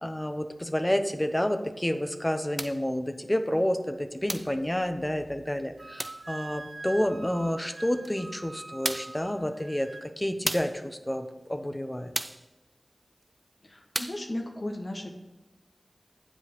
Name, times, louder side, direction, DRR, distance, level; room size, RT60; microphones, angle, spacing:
voice 1, 0.0-12.1, equal, 20° left, 7 dB, 0.8 m, -29 dB
sound 1, 2.6-2.9 4.3-4.6 6.0-6.3 8.0-8.1 8.8-9.2 10.5-10.8 12.1-12.5 13.9-14.3, right 1 dB, 25° right, 0.4 m, -33 dB
Wind instrument woodwind instrument, 5.8-10.1, right 2 dB, 60° right, 0.8 m, -43 dB
voice 2, 13.6-15.1, left 1 dB, 55° left, 2 dB, 1.2 m, -35 dB
7.7 x 5.1 x 6.7 m, 1.1 s
wide cardioid pair, 45°, 0 cm